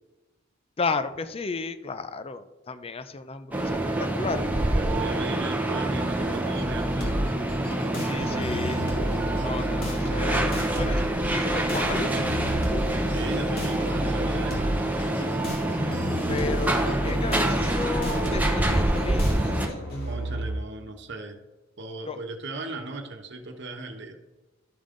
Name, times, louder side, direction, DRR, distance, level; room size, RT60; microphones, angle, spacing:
voice 1, 0.8-4.5 8.0-8.8 9.4-12.1 16.3-19.3 22.1-22.2, left 4 dB, 30° left, 12 dB, 0.5 m, -33 dB
sound 1, 3.5-19.7, right 1 dB, 10° right, 0.9 m, -26 dB
voice 2, 4.7-7.4 13.1-14.7 20.0-21.4 21.8-24.2, right 2 dB, 60° right, 4 dB, 1.1 m, -37 dB
sound 2, 6.6-20.6, equal, 50° left, 2.1 m, -32 dB
12.5 x 5.4 x 3.8 m, 1.1 s
head